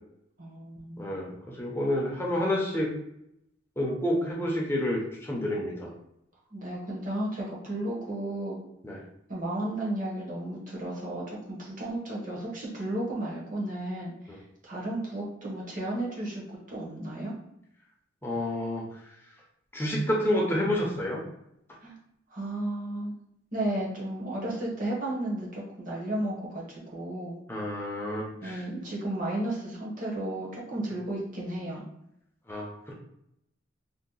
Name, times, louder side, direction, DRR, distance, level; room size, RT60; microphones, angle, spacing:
voice 1, 0.4-1.1 6.5-8.6 9.3-16.4 16.7-17.3 21.8-21.9 22.3-23.1 23.5-27.4 28.4-31.8, right 1 dB, 40° right, -4 dB, 0.9 m, -33 dB
voice 2, 1.0-2.9 3.8-5.9 8.8-9.0 18.2-18.8 19.7-21.2 27.5-28.6 32.5-32.9, left 1 dB, 10° left, -3 dB, 0.5 m, -29 dB
2.7 x 2.1 x 3.8 m, 0.80 s
head